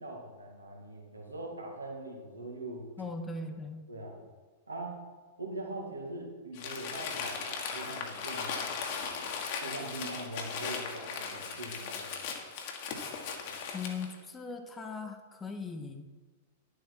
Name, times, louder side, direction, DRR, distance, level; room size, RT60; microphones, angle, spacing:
voice 1, 0.0-2.9 3.9-4.2 4.7-5.0 5.4-9.2 9.6-12.1, right 2 dB, 85° right, -1 dB, 2.2 m, -42 dB
voice 2, 3.0-3.8 13.7-16.0, left 4 dB, 15° left, 5 dB, 1.1 m, -39 dB
Crumpling crinkling, 6.5-14.1, left 5 dB, 55° left, 1.7 m, -38 dB
11.0 x 7.6 x 4.6 m, 1.3 s
figure-of-eight pair, 100°, 0 cm